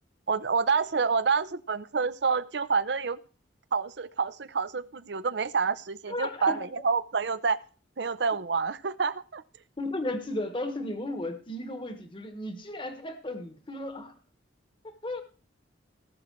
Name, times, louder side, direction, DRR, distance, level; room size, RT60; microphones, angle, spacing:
voice 1, 0.3-3.2 3.7-7.6 8.0-9.4, right 5 dB, 60° right, 15 dB, 0.6 m, -28 dB
voice 2, 6.1-6.6 9.8-14.1 14.8-15.2, left 1 dB, 25° left, 8 dB, 1.1 m, -34 dB
18.0 x 6.2 x 4.5 m, 0.37 s
head